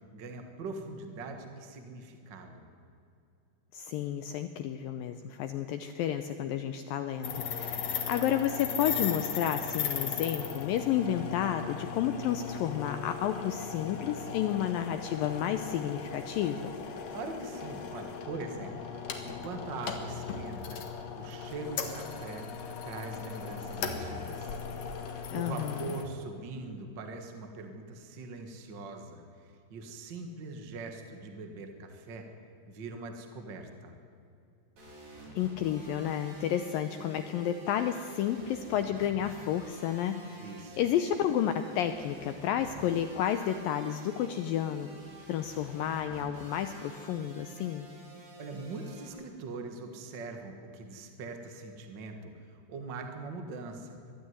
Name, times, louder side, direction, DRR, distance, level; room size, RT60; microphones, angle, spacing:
voice 1, 0.1-2.7 17.1-20.8 21.1-22.5 22.8-24.6 25.0-32.3 32.7-33.9 40.4-40.8 48.4-54.0, right 3 dB, 70° right, 5 dB, 1.0 m, -42 dB
voice 2, 3.7-16.7 25.3-25.9 35.4-44.9 45.3-47.9, left 10 dB, 85° left, 9 dB, 2.0 m, -31 dB
sound 1, 7.2-26.0, left 6 dB, 55° left, 2.1 m, -38 dB
sound 2, 34.8-49.1, right 1 dB, 40° right, 5.0 m, -49 dB
21.5 x 13.0 x 9.6 m, 2.6 s
omnidirectional pair, 4.8 m